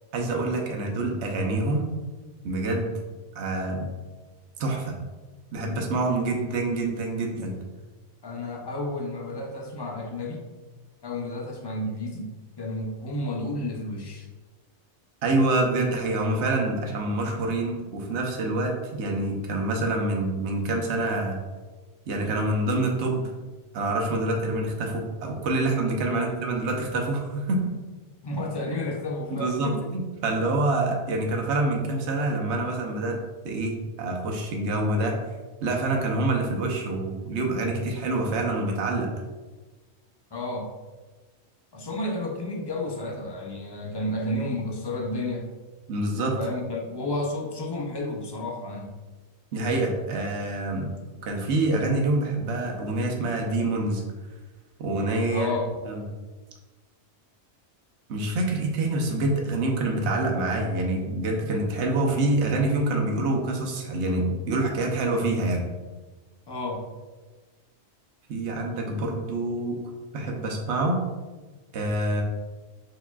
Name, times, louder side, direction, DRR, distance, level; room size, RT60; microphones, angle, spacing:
voice 1, 0.1-1.9 2.4-3.0 3.3-3.9 4.6-5.0 5.5-7.5 15.2-21.4 22.1-23.2 23.7-27.6 29.4-33.2 33.4-35.2 35.6-39.1 45.9-46.4 49.5-50.9 51.2-54.0 54.8-55.5 55.9-56.0 58.1-65.6 68.3-69.8 70.1-71.0 71.7-72.2, right 2 dB, 80° right, 1 dB, 1.0 m, -26 dB
voice 2, 8.2-10.4 11.0-14.3 26.1-26.4 28.2-29.9 40.3-40.7 41.7-45.5 46.4-49.0 55.3-55.8 66.5-66.9, left 1 dB, 35° left, 0 dB, 0.4 m, -31 dB
4.5 x 4.1 x 2.3 m, 1.3 s
omnidirectional pair, 1.2 m